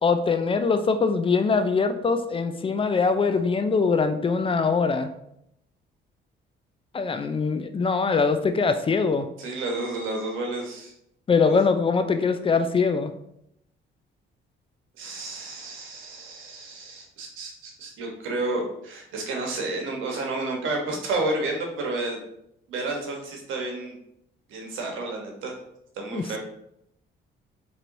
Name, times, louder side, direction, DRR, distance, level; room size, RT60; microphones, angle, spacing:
voice 1, 0.0-5.1 6.9-9.3 11.3-13.1 26.1-26.4, left 4 dB, 25° left, 8 dB, 0.4 m, -23 dB
voice 2, 9.4-10.9 11.5-11.6 15.0-22.2 22.7-24.0 24.5-25.5 25.9-26.4, right 2 dB, 90° right, 1 dB, 1.1 m, -31 dB
4.4 x 3.1 x 2.6 m, 0.77 s
cardioid pair, 90°, 20 cm